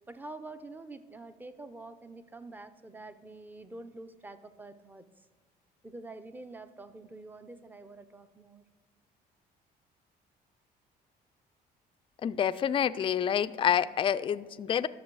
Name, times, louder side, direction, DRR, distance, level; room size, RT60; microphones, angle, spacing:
voice 1, 0.1-5.0 5.8-8.6, right 2 dB, 10° right, 11 dB, 0.6 m, -46 dB
voice 2, 12.2-14.9, left 9 dB, 30° left, 12 dB, 0.3 m, -28 dB
12.0 x 6.9 x 4.7 m, 1.4 s
cardioid pair, 110°, 17 cm